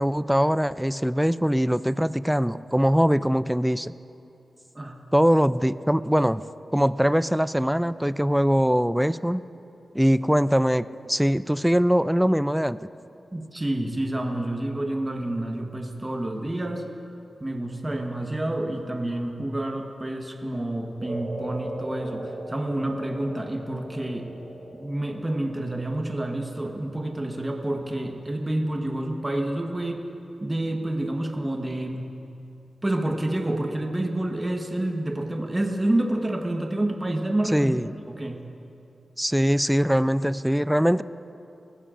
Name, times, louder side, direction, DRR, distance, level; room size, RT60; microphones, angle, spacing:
voice 1, 0.0-3.9 5.1-6.4 6.7-9.4 9.9-12.8 37.5-37.9 39.2-41.0, equal, 5° right, 15 dB, 0.3 m, -22 dB
voice 2, 13.3-16.9 17.4-24.3 24.7-30.1 30.4-32.1 32.8-38.4, right 1 dB, 25° right, 3 dB, 1.2 m, -28 dB
sound 1, 21.0-29.5, right 1 dB, 40° right, 2.0 m, -40 dB
21.0 x 15.0 x 2.5 m, 2.8 s
cardioid pair, 55°, 0 cm